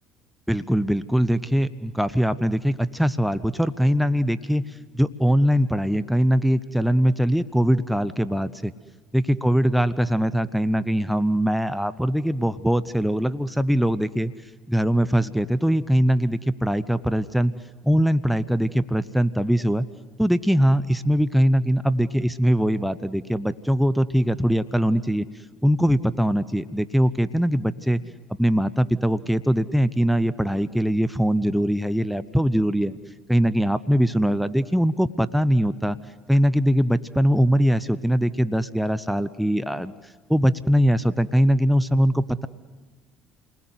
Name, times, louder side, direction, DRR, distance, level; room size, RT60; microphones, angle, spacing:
voice 1, 0.5-4.6 4.9-8.7 9.1-14.3 14.7-17.5 17.9-19.9 20.2-25.3 25.6-28.0 28.4-33.0 33.3-36.0 36.3-39.9 40.3-42.5, equal, ahead, 12 dB, 0.9 m, -21 dB
29.5 x 20.5 x 8.1 m, 1.4 s
hypercardioid pair, 65°, 0 cm